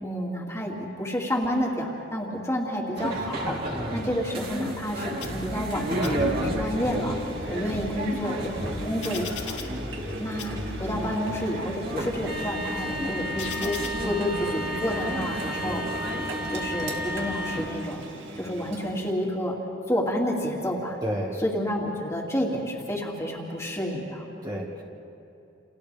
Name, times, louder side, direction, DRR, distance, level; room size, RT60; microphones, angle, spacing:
voice 1, 0.0-3.6 3.9-7.2 7.5-9.6 10.2-13.8 14.0-15.8 16.5-18.1 18.4-19.6 19.9-21.0 21.4-24.2, equal, 15° left, -2 dB, 2.4 m, -29 dB
sound 1, 3.0-17.6, equal, 55° right, 2.7 m, -32 dB
voice 2, 3.7-4.0 7.4-7.6 10.4-10.6 15.5-15.8 21.0-21.4 24.4-24.8, equal, 20° right, -2 dB, 1.8 m, -33 dB
sound 2, 5.2-5.7 6.0-6.7 7.3-10.1 10.4-11.1 11.7-13.9, left 4 dB, 80° left, 2.5 m, -40 dB
Engine, 5.7-19.1, right 1 dB, 80° right, 2.2 m, -40 dB
29.5 x 29.0 x 3.4 m, 2.7 s
head